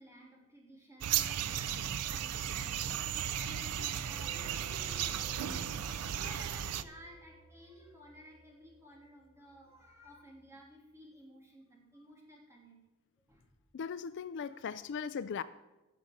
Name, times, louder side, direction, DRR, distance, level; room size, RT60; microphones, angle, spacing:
voice 1, 0.0-12.8 13.3-13.4 14.3-14.9, equal, 10° right, 3.0 m, -55 dB
sound 1, 1.0-6.8, right 9 dB, 90° right, 0.5 m, -35 dB
sound 2, 4.0-10.6, right 3 dB, 60° right, 3.7 m, -59 dB
voice 2, 13.7-15.4, left 6 dB, 55° left, 0.4 m, -38 dB
15.5 x 6.5 x 5.2 m
head